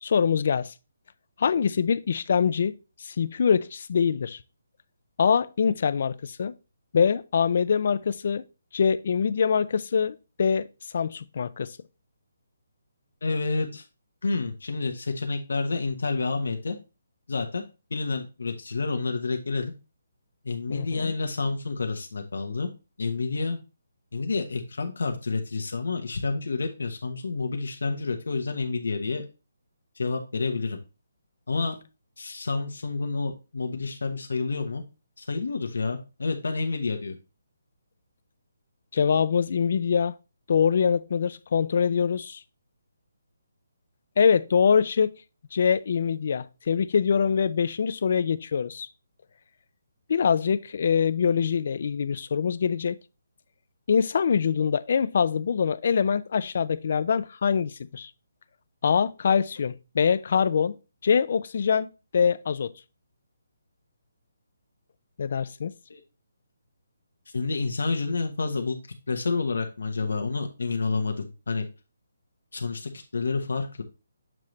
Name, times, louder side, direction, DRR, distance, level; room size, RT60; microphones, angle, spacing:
voice 1, 0.0-0.7 1.4-2.7 3.0-4.4 5.2-6.5 6.9-8.4 8.7-10.7 10.9-11.8 20.7-21.1 38.9-40.1 40.5-42.4 44.2-45.1 45.5-48.9 50.1-53.0 53.9-58.1 58.8-60.7 61.0-61.9 62.1-62.7 65.2-65.7, left 6 dB, 40° left, 0.4 m, -24 dB
voice 2, 13.2-13.8 14.2-16.8 17.3-17.6 17.9-19.7 20.4-22.7 23.0-23.6 24.1-29.2 30.0-30.8 31.5-31.8 32.2-34.8 35.2-37.1 65.9-66.0 67.3-68.8 69.1-71.7 72.5-73.8, left 3 dB, 75° left, 1.0 m, -29 dB
7.5 x 3.2 x 3.9 m
hypercardioid pair, 180°, 0 cm